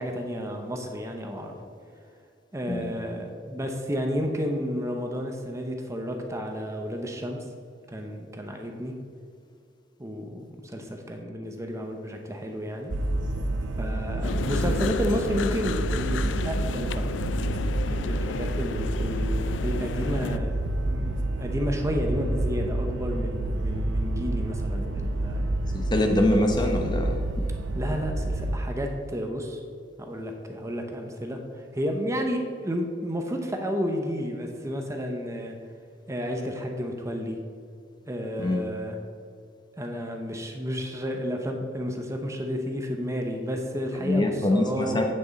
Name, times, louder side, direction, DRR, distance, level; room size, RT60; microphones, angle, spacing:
voice 1, 0.0-1.6 2.5-7.4 7.9-8.9 10.0-12.9 13.8-17.0 17.9-20.6 20.8-25.4 27.7-29.6 30.0-35.5 36.1-37.4 38.1-39.0 39.8-45.0, equal, 15° right, 3 dB, 0.8 m, -31 dB
sound 1, 12.9-28.6, right 1 dB, 75° right, 0.6 m, -28 dB
sound 2, 14.2-20.4, left 6 dB, 80° left, 0.4 m, -34 dB
voice 2, 25.7-27.1 38.4-38.6 44.0-45.1, left 1 dB, 25° left, 3 dB, 0.9 m, -24 dB
8.6 x 8.3 x 4.0 m, 2.3 s
head